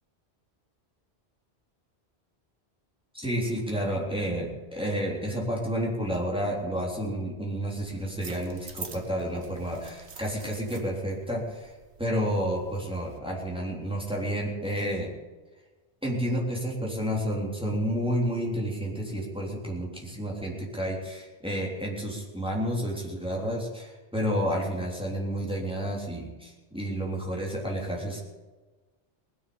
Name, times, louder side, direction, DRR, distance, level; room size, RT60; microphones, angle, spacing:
voice 1, 3.1-11.7 12.0-15.1 16.0-28.2, equal, 5° right, -3 dB, 3.5 m, -30 dB
sound 1, 7.8-13.2, right 5 dB, 85° right, 1.6 m, -47 dB
19.5 x 7.1 x 8.8 m, 1.2 s
omnidirectional pair, 1.1 m